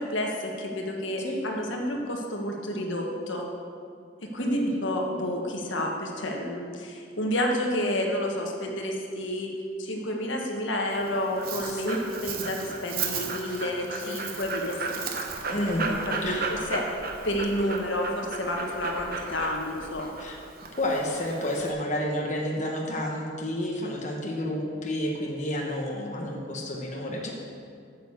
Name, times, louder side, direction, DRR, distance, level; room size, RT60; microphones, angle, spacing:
voice 1, 0.0-3.5 4.3-9.5 9.8-11.9 12.2-15.0 16.1-16.9 17.2-20.1, left 1 dB, 75° left, 1 dB, 1.4 m, -30 dB
voice 2, 4.4-4.7 11.6-12.0 15.5-15.9 16.2-16.5 20.2-20.4 20.8-27.3, equal, 35° left, -1 dB, 1.1 m, -30 dB
Dog, 10.9-21.7, right 4 dB, 45° right, 1.0 m, -34 dB
8.9 x 6.7 x 7.2 m, 2.3 s
head